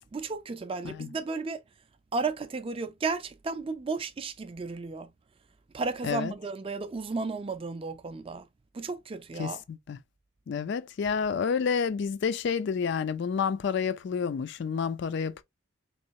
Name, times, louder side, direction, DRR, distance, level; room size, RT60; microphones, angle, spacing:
voice 1, 0.1-1.6 2.1-5.1 5.7-8.5 8.7-9.6, right 4 dB, 25° right, 0.3 m, -33 dB
voice 2, 9.4-10.0 10.5-15.4, left 6 dB, 55° left, 0.3 m, -29 dB
3.8 x 3.1 x 2.6 m
head